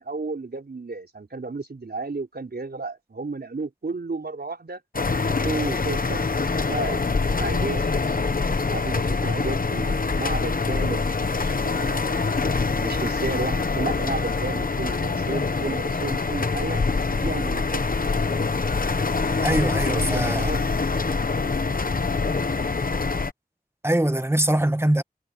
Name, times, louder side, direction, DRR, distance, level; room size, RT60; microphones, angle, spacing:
voice 1, 0.0-4.8 5.3-6.4 6.7-7.0 7.4-8.2 8.6-12.2 12.8-16.8 17.1-17.9 19.9-20.6, right 3 dB, 75° right, 4.7 m, -33 dB
sound 1, 4.9-23.3, left 4 dB, 60° left, 1.1 m, -25 dB
voice 2, 19.4-20.5 23.8-25.0, right 1 dB, 15° right, 1.3 m, -22 dB
wide cardioid pair, 70°, 17 cm